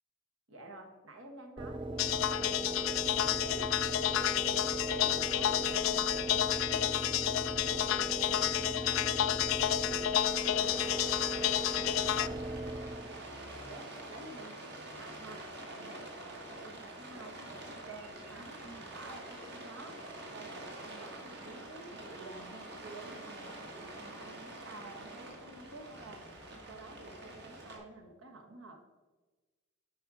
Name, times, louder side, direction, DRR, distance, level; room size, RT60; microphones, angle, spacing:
voice 1, 0.5-4.0 4.3-11.0 11.3-12.5 12.8-20.0 20.3-26.3 26.7-28.8, right 2 dB, 80° right, 3 dB, 1.5 m, -51 dB
sound 1, 1.6-13.3, right 1 dB, 25° right, 0.5 m, -38 dB
sound 2, 2.0-12.3, left 12 dB, 80° left, 0.3 m, -31 dB
Rain, 10.2-27.8, right 1 dB, 55° right, 1.7 m, -47 dB
8.8 x 5.2 x 4.9 m, 1.2 s
head